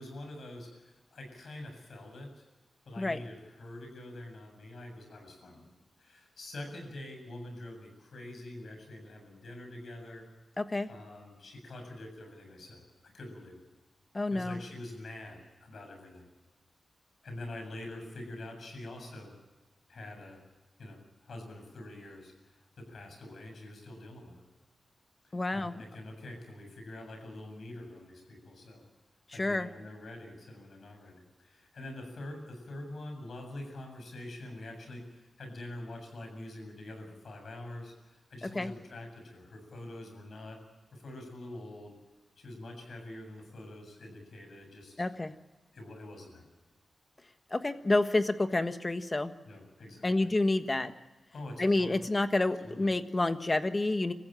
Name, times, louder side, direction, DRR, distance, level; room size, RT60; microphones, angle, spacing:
voice 1, 0.0-2.4 2.9-5.7 6.0-10.3 10.9-13.6 14.3-16.3 17.2-19.4 19.9-20.4 20.8-24.4 25.2-28.8 29.3-40.6 40.9-41.9 42.4-45.1 45.7-46.4 49.5-50.3 51.3-52.0 52.6-52.9, left 1 dB, 75° left, 3 dB, 7.4 m, -45 dB
voice 2, 10.6-10.9 14.1-14.6 25.3-25.8 29.3-29.7 38.4-38.7 45.0-45.3 47.5-49.3 50.0-50.9 51.6-54.1, left 2 dB, 30° left, 9 dB, 1.4 m, -29 dB
26.0 x 14.5 x 8.9 m, 1.2 s
cardioid pair, 75°, 0 cm